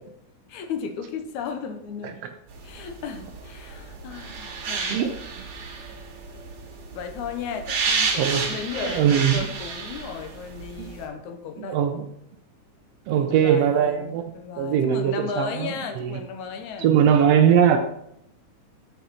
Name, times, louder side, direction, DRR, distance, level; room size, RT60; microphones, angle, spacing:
voice 1, 0.5-2.2 2.6-5.2 6.9-11.8 13.1-16.9, left 6 dB, 75° left, 6 dB, 2.2 m, -35 dB
sound 1, 2.5-11.1, right 4 dB, 65° right, 2.8 m, -31 dB
voice 2, 8.2-8.5 8.8-9.4 10.8-10.9 11.6-12.1 13.1-16.1 16.8-17.8, right 8 dB, 85° right, 6 dB, 1.4 m, -21 dB
8.0 x 7.0 x 4.2 m, 0.76 s
omnidirectional pair, 3.6 m